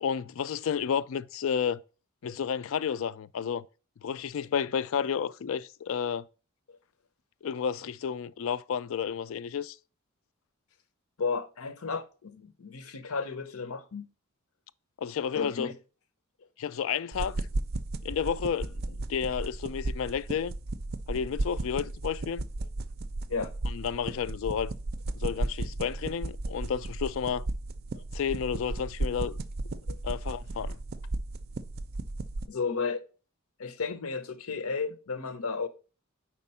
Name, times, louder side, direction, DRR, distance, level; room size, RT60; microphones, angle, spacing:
voice 1, 0.0-1.8 2.2-3.6 4.0-6.2 7.4-9.8 15.0-15.7 16.6-17.4 18.0-20.5 21.1-22.4 23.7-24.7 25.1-27.4 28.1-29.4 30.0-30.8, left 7 dB, 65° left, 0.3 m, -31 dB
voice 2, 11.2-14.1 15.3-15.7 23.3-23.5 27.9-28.0 29.9-30.0 32.5-33.0 33.6-35.7, left 4 dB, 85° left, 0.8 m, -33 dB
sound 1, 17.1-32.5, right 2 dB, 45° right, 0.4 m, -35 dB
4.9 x 4.3 x 5.5 m
head